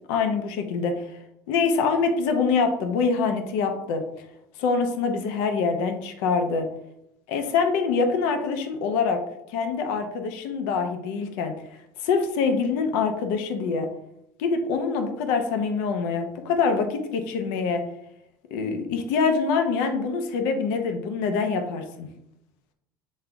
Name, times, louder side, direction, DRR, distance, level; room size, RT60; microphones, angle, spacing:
voice 1, 0.1-1.1 1.5-4.1 4.6-6.7 7.3-9.2 9.5-11.5 12.0-13.9 14.4-17.9 18.5-22.1, left 5 dB, 75° left, 6 dB, 0.9 m, -25 dB
7.7 x 3.8 x 3.5 m, 0.80 s
hypercardioid pair, 75°, 11 cm